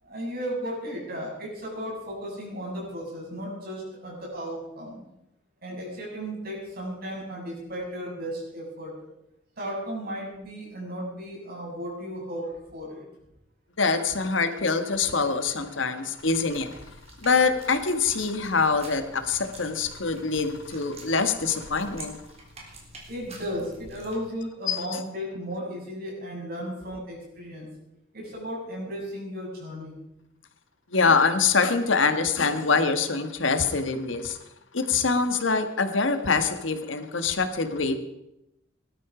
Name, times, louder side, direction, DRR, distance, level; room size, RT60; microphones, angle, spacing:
voice 1, 0.0-5.0 5.6-8.9 9.6-13.1 23.1-27.7 28.1-30.0, equal, 50° right, -3 dB, 7.9 m, -35 dB
voice 2, 13.8-16.7 17.2-22.2 24.7-25.0 30.9-34.4 34.7-38.0, left 4 dB, 80° left, 9 dB, 1.5 m, -24 dB
sound 1, 16.2-24.2, right 1 dB, 35° right, 3.6 m, -47 dB
19.0 x 12.0 x 5.0 m, 0.86 s
head